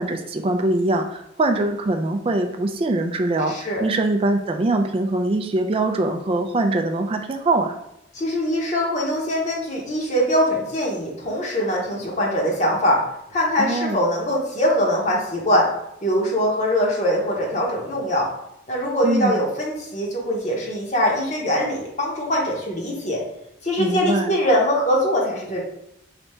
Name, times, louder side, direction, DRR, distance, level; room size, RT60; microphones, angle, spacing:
voice 1, 0.0-7.8 13.6-14.0 19.0-19.4 23.8-24.3, right 2 dB, 30° right, 5 dB, 0.3 m, -22 dB
voice 2, 3.5-3.8 8.1-13.0 13.3-15.7 16.0-18.3 18.7-23.2 23.6-25.6, equal, 40° left, -2 dB, 0.9 m, -22 dB
3.3 x 2.7 x 4.2 m, 0.82 s
head